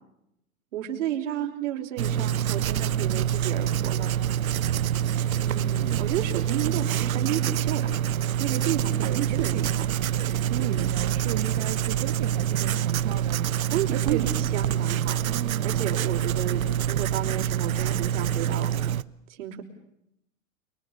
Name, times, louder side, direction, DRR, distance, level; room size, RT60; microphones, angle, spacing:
voice 1, 0.7-4.1 5.4-8.1 8.4-9.8 10.6-10.9 13.7-15.2 15.6-18.7 19.3-19.6, right 10 dB, 60° right, 4 dB, 5.3 m, -32 dB
Writing, 2.0-19.0, right 10 dB, 90° right, 1.1 m, -26 dB
voice 2, 5.8-6.1 9.0-9.7 10.2-14.2 15.2-15.8, right 15 dB, 35° right, 4 dB, 1.7 m, -36 dB
29.5 x 24.0 x 7.0 m, 0.79 s
supercardioid pair, 160°, 41 cm